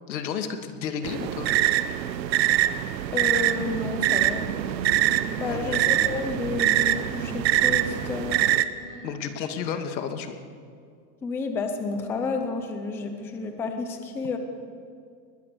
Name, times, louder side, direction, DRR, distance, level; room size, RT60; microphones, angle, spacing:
voice 1, 0.1-1.5 5.4-6.0 9.0-10.4, left 7 dB, 90° left, 7 dB, 2.4 m, -32 dB
sound 1, 1.0-8.6, right 12 dB, 90° right, 1.2 m, -24 dB
voice 2, 3.1-4.4 5.4-8.4 11.2-14.4, left 4 dB, 5° left, 6 dB, 0.5 m, -31 dB
sound 2, 3.3-9.7, right 1 dB, 20° right, 7.4 m, -43 dB
21.5 x 20.5 x 6.9 m, 2.3 s
supercardioid pair, 165°, 50 cm